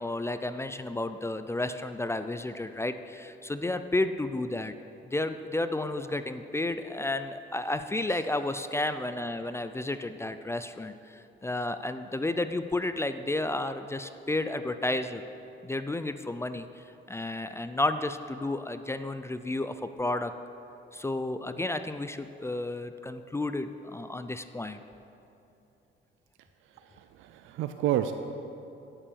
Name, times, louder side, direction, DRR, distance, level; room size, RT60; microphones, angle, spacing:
voice 1, 0.0-4.7 5.0-15.2 15.6-20.3 20.9-24.8, left 2 dB, 15° left, 10 dB, 0.4 m, -32 dB
voice 2, 26.8-28.1, right 12 dB, 85° right, 8 dB, 0.4 m, -30 dB
8.7 x 6.8 x 6.9 m, 2.8 s
cardioid pair, 90°, 20 cm